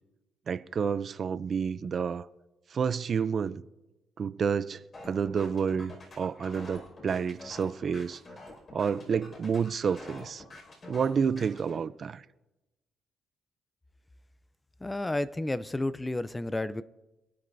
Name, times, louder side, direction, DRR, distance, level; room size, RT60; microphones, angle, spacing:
voice 1, 0.5-2.3 2.7-3.6 4.2-8.2 8.7-10.4 10.9-12.2, right 6 dB, 50° right, 0.5 m, -29 dB
sound 1, 4.9-11.8, left 2 dB, 40° left, 5.4 m, -47 dB
voice 2, 14.8-16.8, left 2 dB, 15° left, 0.5 m, -31 dB
27.5 x 9.8 x 2.7 m
cardioid pair, 90°, 0 cm